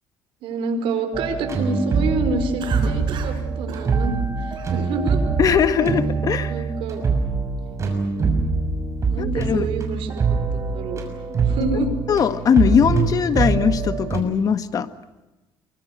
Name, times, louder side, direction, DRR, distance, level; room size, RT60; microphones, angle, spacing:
voice 1, 0.4-5.2 6.5-7.0 8.2-8.4 8.7-8.8 9.1-10.1 10.5-11.0 11.4-11.9, right 3 dB, 80° right, 7 dB, 5.0 m, -27 dB
sound 1, 1.1-14.2, right 4 dB, 35° right, 6.2 m, -24 dB
Cough, 2.6-3.4 3.7-3.9 4.5-4.9 5.4-6.1, right 7 dB, 60° right, 5.3 m, -35 dB
voice 2, 5.4-6.5 9.2-9.7 12.1-14.9, left 7 dB, 40° left, 11 dB, 1.6 m, -20 dB
27.5 x 24.0 x 6.6 m, 1.0 s
cardioid pair, 135°, 9 cm